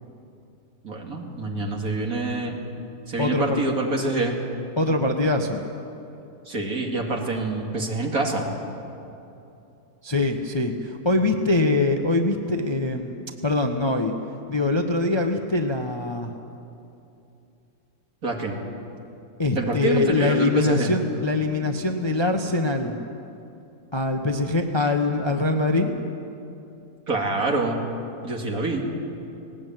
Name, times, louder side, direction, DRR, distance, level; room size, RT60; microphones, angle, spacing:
voice 1, 0.8-2.6 3.1-4.4 6.5-8.5 18.2-18.6 19.6-20.9 27.1-27.8 28.2-28.9, right 2 dB, 55° right, 1 dB, 2.8 m, -26 dB
voice 2, 3.2-3.6 4.8-5.6 10.0-14.1 14.5-16.3 19.4-23.0 23.9-25.9, left 2 dB, 20° left, 4 dB, 0.8 m, -23 dB
19.0 x 18.5 x 9.2 m, 2.8 s
omnidirectional pair, 1.8 m